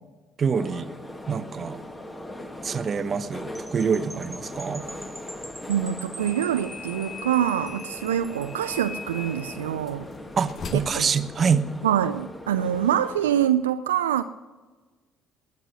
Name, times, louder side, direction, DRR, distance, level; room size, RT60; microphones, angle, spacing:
voice 1, 0.4-0.9 1.3-1.8 2.6-4.8 10.4-11.6, right 6 dB, 40° right, 13 dB, 0.9 m, -25 dB
sound 1, 0.5-13.5, left 1 dB, 15° left, 2.0 m, -40 dB
sound 2, 3.5-8.8, right 1 dB, 5° right, 1.1 m, -45 dB
voice 2, 5.7-10.1 10.7-11.1 11.8-14.2, right 10 dB, 85° right, 10 dB, 0.4 m, -25 dB
sound 3, 6.2-12.0, left 4 dB, 45° left, 1.4 m, -41 dB
19.5 x 10.5 x 6.2 m, 1.3 s
hypercardioid pair, 55°, 0 cm